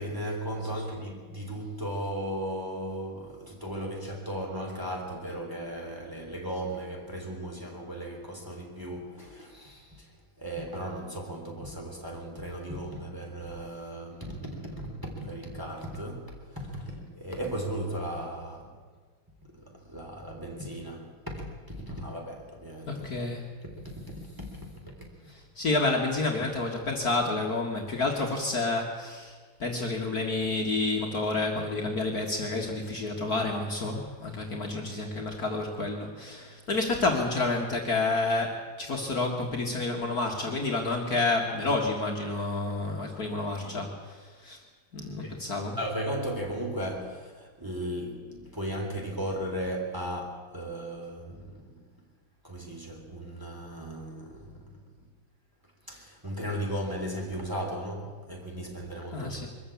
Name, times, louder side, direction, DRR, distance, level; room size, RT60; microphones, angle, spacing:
voice 1, 0.0-10.1 10.4-18.7 19.9-21.1 21.3-23.1 23.8-24.5 43.5-43.8 45.2-45.3 45.8-51.7 52.4-54.6 55.9-59.5, right 1 dB, 10° right, -1 dB, 3.4 m, -36 dB
voice 2, 22.9-23.4 25.6-44.6 44.9-45.8 59.1-59.5, left 3 dB, 45° left, 0 dB, 2.2 m, -29 dB
22.5 x 14.0 x 8.5 m, 1.5 s
omnidirectional pair, 2.3 m